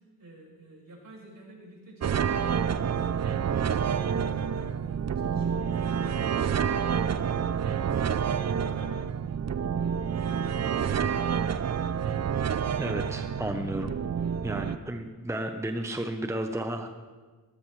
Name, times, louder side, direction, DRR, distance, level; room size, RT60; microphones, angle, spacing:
voice 1, 0.2-3.1 3.4-9.3 10.1-11.1, right 1 dB, 60° right, -3 dB, 5.7 m, -50 dB
sound 1, 2.0-14.8, right 7 dB, 45° right, 0.5 m, -28 dB
voice 2, 12.8-13.9 14.4-16.9, right 1 dB, 5° right, 5 dB, 0.9 m, -33 dB
17.5 x 15.0 x 3.3 m, 1.4 s
cardioid pair, 60°, 38 cm